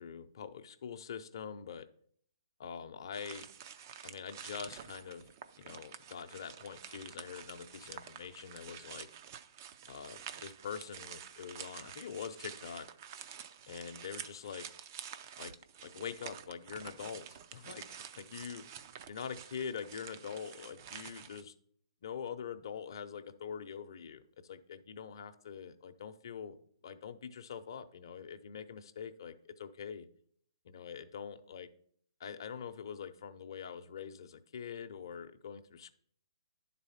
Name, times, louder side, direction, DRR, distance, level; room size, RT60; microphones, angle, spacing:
voice 1, 0.0-1.9 2.6-3.5 4.0-5.3 5.6-9.1 9.9-12.9 13.7-14.7 15.4-15.5 15.8-18.6 19.1-21.5 22.0-26.6 26.8-30.1 30.6-31.7 32.2-35.9, left 7 dB, 55° left, 8 dB, 0.7 m, -44 dB
sound 1, 3.1-21.4, right 9 dB, 35° right, 0.4 m, -49 dB
10.5 x 4.1 x 5.7 m, 0.62 s
hypercardioid pair, 160°, 3 cm